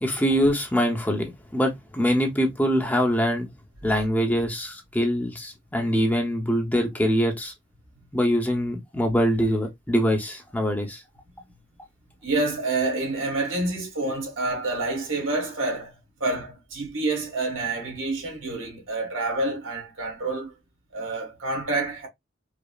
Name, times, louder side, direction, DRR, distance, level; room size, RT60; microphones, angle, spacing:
voice 1, 0.0-3.5 3.8-7.5 8.1-11.0, equal, 10° left, 0.7 m, -24 dB
voice 2, 12.2-15.9 16.2-20.5 20.9-22.1, right 2 dB, 80° right, 1.9 m, -28 dB
5.0 x 2.0 x 2.3 m
head